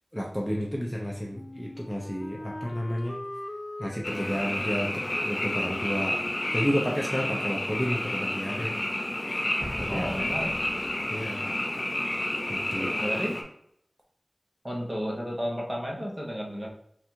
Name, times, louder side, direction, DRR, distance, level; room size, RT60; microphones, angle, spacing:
voice 1, 0.1-3.2 3.8-6.2 6.5-8.8 9.1-9.3 9.8-10.0 11.1-11.4 12.5-13.0, equal, 5° left, -2 dB, 0.7 m, -31 dB
Wind instrument woodwind instrument, 1.3-8.1, left 1 dB, 45° left, 0.3 m, -42 dB
Frog, 4.0-13.4, left 1 dB, 65° left, 0.7 m, -30 dB
Explosion, 9.6-11.3, equal, 70° right, 1.3 m, -41 dB
voice 2, 9.9-10.6 13.0-13.4 14.6-16.7, equal, 30° right, -2 dB, 1.1 m, -32 dB
3.4 x 2.5 x 4.5 m, 0.70 s
wide cardioid pair, 45°, 0 cm